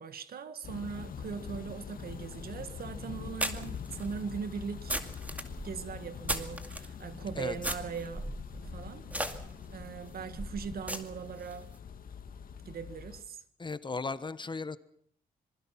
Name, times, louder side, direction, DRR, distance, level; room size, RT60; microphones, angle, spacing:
voice 1, 0.0-5.0 5.6-8.3 8.6-9.1 9.7-11.7 12.7-13.4, right 6 dB, 70° right, 1.7 m, -40 dB
sound 1, 0.6-13.2, left 7 dB, 60° left, 2.0 m, -44 dB
sound 2, 2.3-2.4 3.4-6.9 7.6-11.6, right 1 dB, 10° right, 2.2 m, -38 dB
voice 2, 13.6-14.8, left 4 dB, 30° left, 1.2 m, -36 dB
26.0 x 21.0 x 6.0 m
cardioid pair, 85°, 16 cm